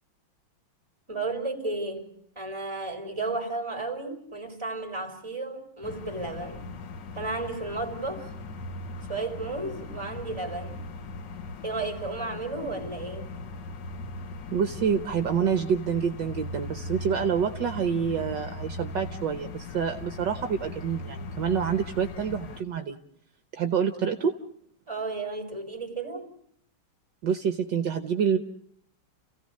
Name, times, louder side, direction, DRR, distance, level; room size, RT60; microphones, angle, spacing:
voice 1, 1.1-6.7 7.1-8.3 9.1-10.8 11.6-13.3 24.9-26.3, right 3 dB, 15° right, 3.3 m, -33 dB
sound 1, 5.8-22.6, left 2 dB, 60° left, 1.6 m, -39 dB
voice 2, 14.5-23.0 23.5-24.4 27.2-28.4, right 7 dB, 65° right, 1.6 m, -27 dB
30.0 x 16.5 x 6.4 m
omnidirectional pair, 2.3 m